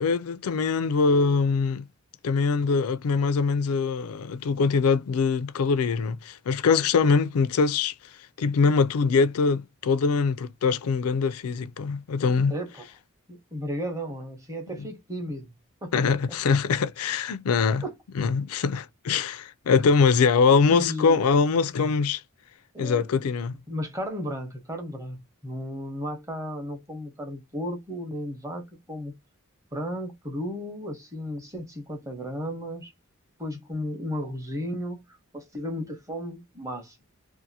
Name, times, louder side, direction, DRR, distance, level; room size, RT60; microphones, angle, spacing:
voice 1, 0.0-1.8 2.2-7.9 8.4-12.6 14.8-14.9 15.9-17.8 18.2-22.2 22.8-23.5, left 5 dB, 80° left, 0.4 m, -23 dB
voice 2, 12.5-12.9 13.3-15.5 15.8-16.1 17.8-17.9 20.7-21.2 22.7-23.1 23.7-29.1 29.7-32.9 33.4-35.0 35.3-37.0, equal, 15° right, 0.9 m, -34 dB
2.7 x 2.5 x 2.7 m
head